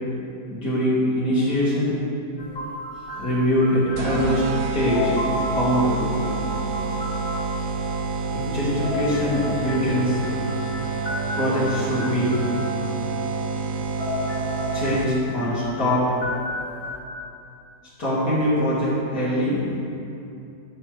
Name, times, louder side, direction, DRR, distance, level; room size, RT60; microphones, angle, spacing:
voice 1, 0.5-2.0 3.2-4.4 4.7-5.1 5.5-6.0 8.3-10.2 11.4-12.4 14.7-16.1 18.0-19.7, left 1 dB, 70° left, -11 dB, 2.8 m, -23 dB
sound 1, 2.4-4.6 4.9-7.6 8.6-12.8 13.8-17.0, left 2 dB, 15° left, 2.0 m, -33 dB
sound 2, 4.0-15.4, right 4 dB, 70° right, 0.8 m, -28 dB
13.0 x 6.9 x 3.2 m, 2.7 s
omnidirectional pair, 1.8 m